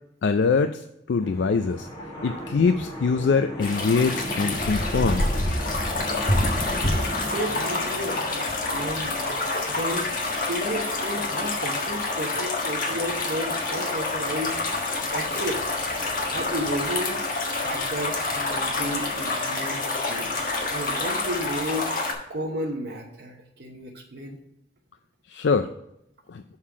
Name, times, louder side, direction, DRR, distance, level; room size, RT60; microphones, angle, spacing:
voice 1, 0.2-1.9 2.2-5.3 25.3-25.7 26.3-26.4, left 4 dB, 85° left, 9 dB, 0.4 m, -23 dB
sound 1, 1.2-18.7, equal, 25° left, 2.2 m, -40 dB
sound 2, 3.6-22.1, left 2 dB, 50° left, 1.5 m, -27 dB
voice 2, 7.2-9.3 9.7-10.1 10.4-15.7 16.3-17.2 17.6-19.8 20.1-20.4 20.7-22.0 22.3-24.4, right 1 dB, 70° right, -1 dB, 1.0 m, -33 dB
6.5 x 5.7 x 4.8 m, 0.80 s
head